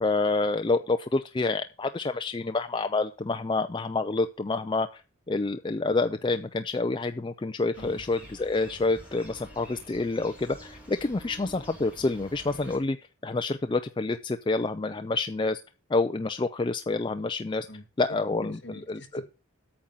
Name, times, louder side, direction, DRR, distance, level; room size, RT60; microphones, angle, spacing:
voice 1, 0.0-5.0 5.3-13.0 13.2-15.6 15.9-17.7 18.0-18.6 18.9-19.0, left 3 dB, 20° left, 8 dB, 0.4 m, -28 dB
sound 1, 7.7-12.8, equal, 5° right, 3.1 m, -48 dB
voice 2, 17.7-19.3, left 1 dB, 55° left, 6 dB, 1.6 m, -43 dB
8.8 x 5.4 x 7.5 m, 0.32 s
head